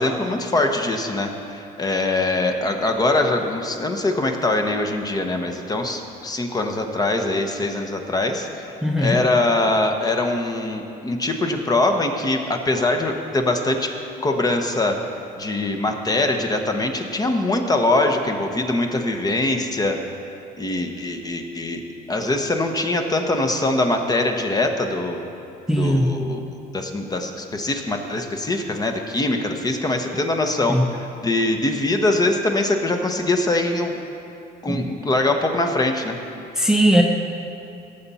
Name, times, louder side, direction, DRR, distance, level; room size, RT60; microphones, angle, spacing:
voice 1, 0.0-13.9 14.2-15.0 15.4-20.0 20.6-21.8 22.1-25.2 25.8-26.5 26.7-34.0 34.6-36.2, left 2 dB, 20° left, 4 dB, 0.9 m, -23 dB
voice 2, 8.8-9.2 25.7-26.1 30.7-30.8 34.7-35.0 36.6-37.0, equal, 5° right, 1 dB, 0.7 m, -19 dB
17.0 x 7.1 x 4.2 m, 2.7 s
cardioid pair, 110°, 17 cm